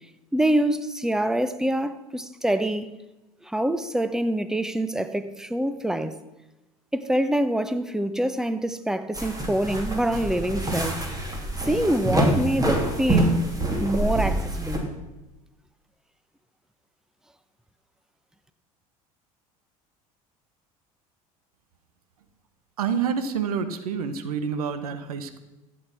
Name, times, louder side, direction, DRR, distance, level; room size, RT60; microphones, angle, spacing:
voice 1, 0.3-2.9 3.4-6.2 6.9-11.0 11.7-13.4 13.8-14.9, right 1 dB, 5° right, 0.9 m, -25 dB
sound 1, 9.1-14.8, right 1 dB, 20° right, 3.1 m, -25 dB
voice 2, 22.8-25.4, right 6 dB, 85° right, 1.0 m, -28 dB
14.0 x 8.5 x 5.9 m
hypercardioid pair, 75°, 19 cm